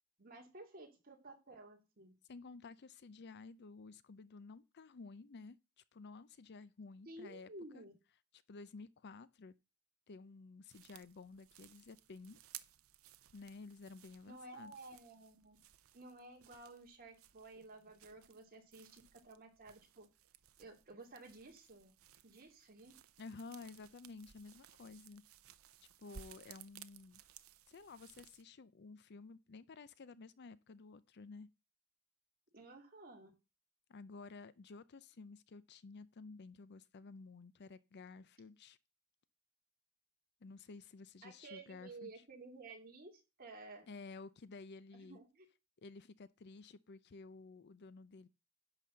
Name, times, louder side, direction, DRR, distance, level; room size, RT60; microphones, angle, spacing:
voice 1, 0.2-2.1 7.1-7.9 14.3-15.6 15.9-20.1 20.6-21.9 22.2-22.9 32.5-33.3 41.2-43.9 44.9-45.5, right 2 dB, 40° right, 2.6 m, -54 dB
voice 2, 2.3-5.6 5.9-7.5 7.7-7.8 8.5-9.5 10.1-12.4 13.3-14.7 23.2-25.2 26.0-27.2 27.7-31.5 33.9-38.8 40.4-42.1 43.9-45.2 45.8-48.3, left 4 dB, 50° left, 0.5 m, -53 dB
sound 1, 10.7-28.4, right 10 dB, 65° right, 0.7 m, -60 dB
11.0 x 4.1 x 7.4 m
head